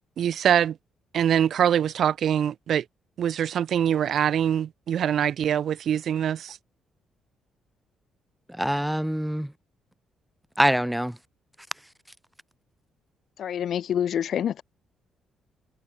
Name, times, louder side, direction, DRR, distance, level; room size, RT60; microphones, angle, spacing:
voice 1, 0.2-0.8 1.1-2.8 3.2-6.6, right 9 dB, 65° right, 6.0 m, -24 dB
voice 2, 8.6-9.5 10.6-11.2, equal, 5° right, 6.8 m, -24 dB
voice 3, 13.4-14.6, left 9 dB, 65° left, 3.4 m, -27 dB
cardioid pair, 90°, 0 cm